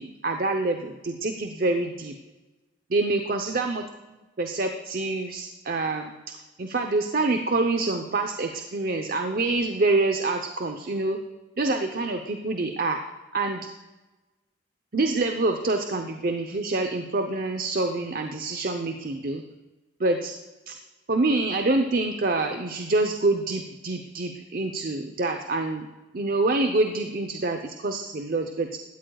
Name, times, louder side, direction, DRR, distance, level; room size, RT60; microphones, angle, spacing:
voice 1, 0.0-2.1 2.9-3.8 4.4-6.1 6.6-11.2 11.6-13.0 13.3-13.7 14.9-19.4 20.0-20.4 20.7-20.8 21.1-25.9 26.1-28.8, right 2 dB, 50° right, 6 dB, 0.8 m, -26 dB
16.5 x 13.5 x 2.4 m, 1.1 s
head